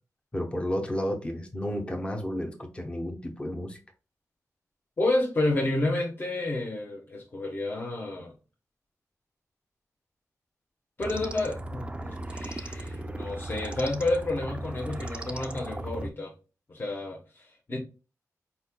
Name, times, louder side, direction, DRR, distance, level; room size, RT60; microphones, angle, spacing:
voice 1, 0.3-3.8, equal, 20° left, 0.9 m, -32 dB
voice 2, 5.0-8.3 11.0-16.3 16.7-17.8, left 2 dB, 35° left, 1.1 m, -30 dB
sound 1, 11.0-16.1, right 1 dB, 20° right, 0.5 m, -37 dB
4.6 x 4.3 x 2.2 m
wide cardioid pair, 110°, 6 cm